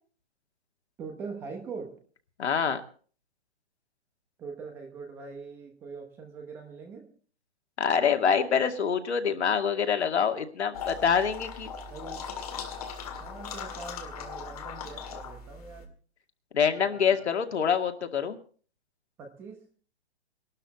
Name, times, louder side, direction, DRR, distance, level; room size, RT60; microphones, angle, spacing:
voice 1, 1.0-1.9 4.4-7.1 11.9-12.3 13.2-15.9 16.7-17.3 19.2-19.7, right 4 dB, 5° right, 4 dB, 1.0 m, -42 dB
voice 2, 2.4-2.8 7.8-11.7 16.5-18.4, left 7 dB, 80° left, 6 dB, 2.3 m, -25 dB
sound 1, 10.7-15.9, left 6 dB, 35° left, 2.1 m, -39 dB
21.0 x 12.5 x 4.2 m, 0.43 s
hypercardioid pair, 175°, 33 cm